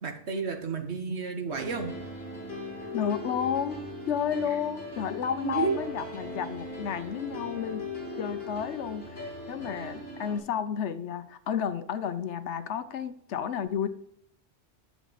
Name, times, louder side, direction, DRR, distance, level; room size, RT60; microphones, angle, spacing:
voice 1, 0.0-1.9 5.4-5.8, right 5 dB, 70° right, 5 dB, 1.5 m, -31 dB
sound 1, 1.5-10.4, left 1 dB, 60° left, 3.1 m, -39 dB
voice 2, 2.9-3.8 4.1-7.8 8.2-13.9, left 8 dB, 90° left, 12 dB, 1.1 m, -31 dB
9.4 x 7.3 x 4.0 m, 0.71 s
omnidirectional pair, 1.1 m